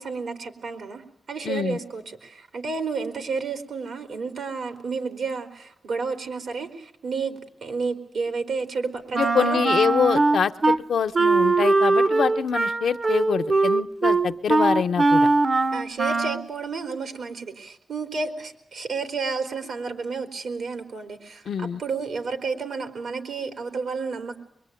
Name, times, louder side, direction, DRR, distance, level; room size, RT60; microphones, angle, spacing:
voice 1, 0.0-9.6 15.7-24.4, right 4 dB, 85° right, 7 dB, 3.9 m, -31 dB
voice 2, 1.4-1.8 9.1-15.3 21.5-21.8, left 7 dB, 85° left, 8 dB, 0.9 m, -25 dB
Wind instrument woodwind instrument, 9.1-10.8 11.1-16.5, right 3 dB, 50° right, 0.9 m, -21 dB
24.0 x 23.0 x 9.3 m, 0.82 s
cardioid pair, 65°, 0 cm